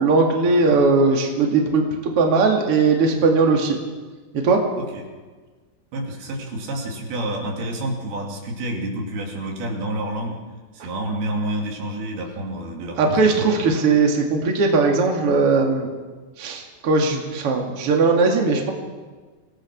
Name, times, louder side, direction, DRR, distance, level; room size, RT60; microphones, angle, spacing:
voice 1, 0.0-3.8 4.3-4.6 13.0-15.9 16.4-18.7, right 4 dB, 40° right, 1 dB, 3.0 m, -19 dB
voice 2, 5.9-10.4 10.7-13.2, right 1 dB, 90° right, 0 dB, 4.9 m, -29 dB
26.5 x 18.0 x 6.1 m, 1.4 s
omnidirectional pair, 4.3 m